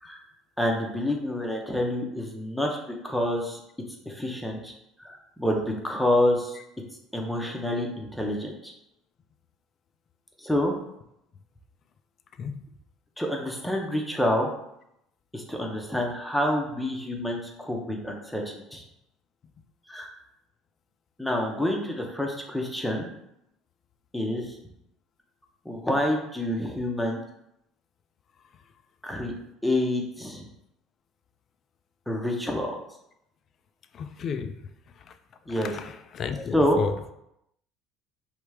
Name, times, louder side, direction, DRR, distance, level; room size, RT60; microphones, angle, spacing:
voice 1, 0.6-2.8 3.0-3.6 4.1-4.7 5.0-6.6 7.1-8.7 10.4-10.7 13.2-14.5 15.3-18.8 19.9-20.1 21.2-23.1 24.1-24.6 25.6-27.2 29.0-29.3 29.6-30.5 32.1-32.8 35.5-35.7 36.5-36.8, left 1 dB, 5° left, 1 dB, 0.7 m, -27 dB
voice 2, 33.9-34.5 35.6-37.1, left 6 dB, 35° left, 9 dB, 0.3 m, -32 dB
3.3 x 3.2 x 4.8 m, 0.81 s
cardioid pair, 145°, 0 cm